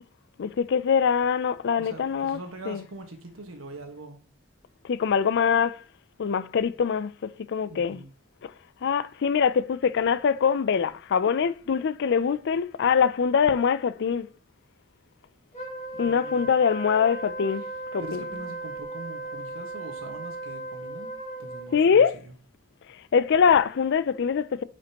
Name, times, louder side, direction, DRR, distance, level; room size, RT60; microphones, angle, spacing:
voice 1, 0.4-2.4 2.7-2.8 4.8-5.8 6.2-8.0 8.4-8.5 8.8-14.3 16.0-17.6 17.9-18.2 21.7-22.2 23.1-24.6, left 6 dB, 60° left, 0.4 m, -23 dB
voice 2, 1.8-4.2 7.7-8.1 15.9-16.5 18.0-21.1 21.4-22.0, right 2 dB, 85° right, 1.4 m, -42 dB
Wind instrument woodwind instrument, 15.5-21.8, right 2 dB, 35° left, 2.8 m, -36 dB
8.7 x 5.2 x 2.9 m
head